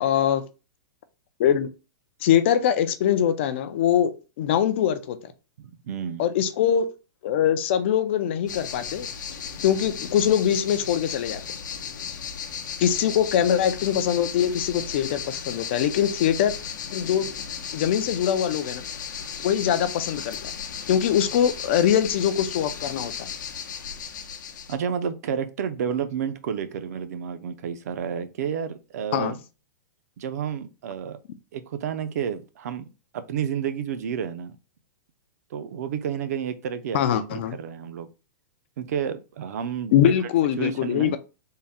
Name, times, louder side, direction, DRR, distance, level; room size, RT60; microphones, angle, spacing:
voice 1, 0.0-0.4 1.4-1.7 2.2-5.3 6.2-6.9 7.2-9.1 9.6-11.4 12.8-16.5 16.9-17.3 17.7-18.8 19.4-20.5 20.9-23.3 29.1-29.3 36.9-37.6 39.9-41.2, left 9 dB, 40° left, 0.4 m, -23 dB
voice 2, 5.6-6.3 24.7-29.4 30.2-31.2 31.5-32.9 33.1-34.6 35.5-38.1 38.8-39.9 40.6-41.2, right 8 dB, 55° right, 0.5 m, -30 dB
sound 1, 8.5-24.8, left 7 dB, 75° left, 0.7 m, -35 dB
3.7 x 2.1 x 4.1 m
hypercardioid pair, 170°, 10 cm